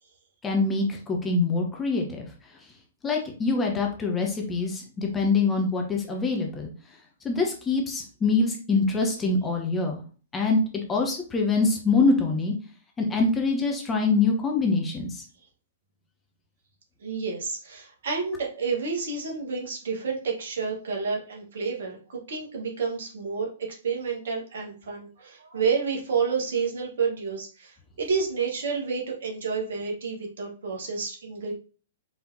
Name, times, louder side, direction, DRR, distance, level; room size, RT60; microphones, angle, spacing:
voice 1, 0.4-2.3 3.0-6.7 7.2-10.0 10.3-10.6 10.9-12.5 13.0-15.2, left 3 dB, 15° left, 1 dB, 0.9 m, -24 dB
voice 2, 17.0-31.5, right 5 dB, 60° right, -1 dB, 1.4 m, -30 dB
4.5 x 3.4 x 2.7 m, 0.39 s
figure-of-eight pair, 110°, 0 cm